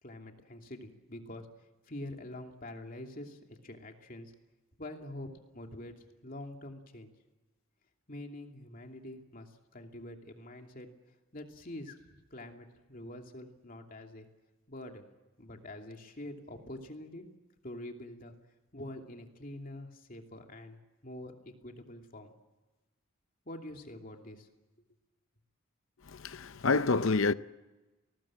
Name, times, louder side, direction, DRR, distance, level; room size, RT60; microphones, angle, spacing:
voice 1, 0.0-4.3 4.8-5.3 5.5-7.1 8.1-10.9 11.3-12.0 12.3-14.3 14.7-15.0 15.4-17.3 17.6-18.3 18.7-22.3 23.4-24.5, left 1 dB, 40° left, 2.8 m, -45 dB
voice 2, 26.1-27.3, left 4 dB, 60° left, 0.7 m, -28 dB
29.0 x 20.0 x 7.5 m
head